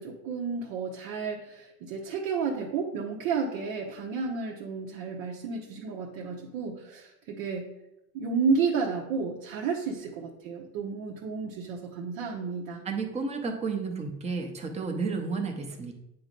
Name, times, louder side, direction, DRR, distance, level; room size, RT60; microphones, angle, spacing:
voice 1, 0.0-7.7 8.1-12.8, right 5 dB, 80° right, -2 dB, 1.1 m, -31 dB
voice 2, 12.9-15.9, right 4 dB, 15° right, 3 dB, 0.6 m, -32 dB
8.6 x 3.0 x 5.2 m, 0.88 s
cardioid pair, 170°, 43 cm